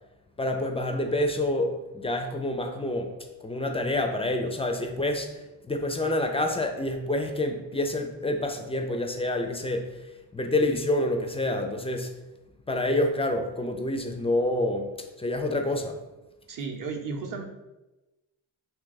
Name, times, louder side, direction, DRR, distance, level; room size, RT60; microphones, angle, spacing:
voice 1, 0.4-5.3 5.7-9.9 10.3-12.1 12.7-14.9 15.2-16.0, left 1 dB, 15° left, 5 dB, 0.3 m, -27 dB
voice 2, 16.5-17.4, right 4 dB, 45° right, 3 dB, 0.7 m, -33 dB
2.8 x 2.3 x 3.9 m, 1.0 s
supercardioid pair, 55°, 45 cm